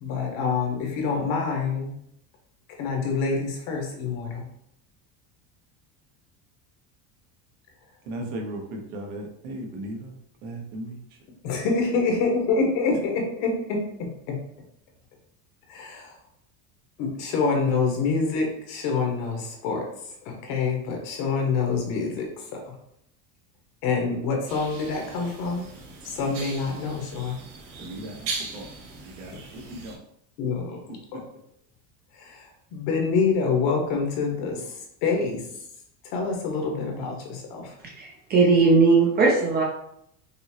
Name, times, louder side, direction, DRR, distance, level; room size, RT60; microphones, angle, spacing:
voice 1, 0.0-1.9 2.8-4.4 11.4-14.4 15.7-16.1 17.0-19.9 20.2-22.6 23.8-25.6 26.0-27.4 30.4-31.2 32.1-35.4 36.1-37.7, left 4 dB, 65° left, 1 dB, 1.2 m, -26 dB
voice 2, 8.1-10.1 10.4-11.2 27.8-28.7 29.0-30.0 30.9-31.0, right 1 dB, 80° right, 2 dB, 1.0 m, -37 dB
sound 1, 24.5-30.0, right 4 dB, 50° right, 0.8 m, -39 dB
voice 3, 38.0-39.6, right 4 dB, 25° right, 0 dB, 0.3 m, -18 dB
5.4 x 2.0 x 2.8 m, 0.74 s
cardioid pair, 155°, 42 cm